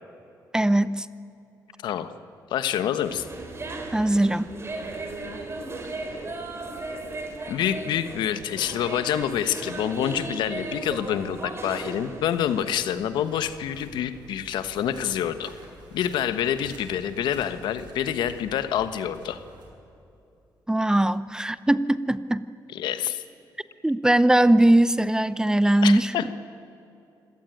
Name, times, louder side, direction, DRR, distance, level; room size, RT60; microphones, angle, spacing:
voice 1, 0.5-1.1 3.9-4.5 20.7-22.5 23.8-26.1, right 1 dB, 10° right, 15 dB, 0.8 m, -20 dB
voice 2, 2.5-3.3 7.5-15.5 15.9-19.4 22.7-23.2 25.8-26.3, left 9 dB, 85° left, 11 dB, 1.2 m, -27 dB
sound 1, 3.0-12.7, right 2 dB, 35° right, 4.1 m, -36 dB
sound 2, 12.6-19.7, right 2 dB, 75° right, 7.5 m, -49 dB
26.0 x 17.5 x 9.1 m, 2.7 s
cardioid pair, 80°, 8 cm